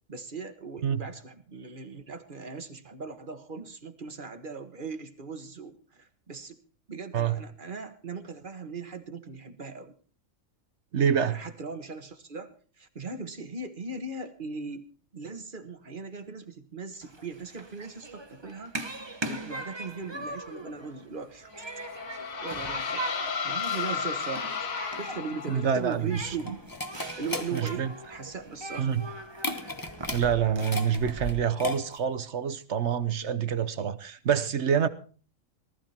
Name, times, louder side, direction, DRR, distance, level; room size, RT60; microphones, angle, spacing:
voice 1, 0.1-6.6 6.9-9.9 11.3-14.8 15.1-18.7 19.2-21.8 22.4-23.2 23.4-26.5 27.2-29.0, right 4 dB, 40° right, 1.7 m, -39 dB
voice 2, 10.9-11.4 25.5-26.3 27.5-27.9 28.8-29.0 30.1-34.9, right 8 dB, 60° right, 1.2 m, -26 dB
Human group actions, 17.0-31.3, right 2 dB, 20° right, 1.2 m, -41 dB
sound 1, 21.5-25.9, left 6 dB, 75° left, 1.7 m, -33 dB
sound 2, 25.7-32.2, left 2 dB, 15° left, 1.1 m, -37 dB
19.0 x 13.5 x 4.4 m
omnidirectional pair, 1.4 m